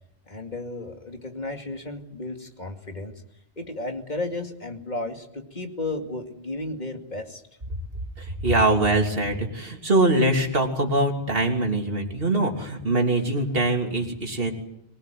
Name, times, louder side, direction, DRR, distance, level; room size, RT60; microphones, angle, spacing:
voice 1, 0.3-3.1 3.6-7.4, left 2 dB, 40° left, 5 dB, 2.6 m, -33 dB
voice 2, 8.2-14.5, right 2 dB, 60° right, 3 dB, 3.3 m, -23 dB
24.0 x 18.5 x 9.4 m, 0.77 s
omnidirectional pair, 1.1 m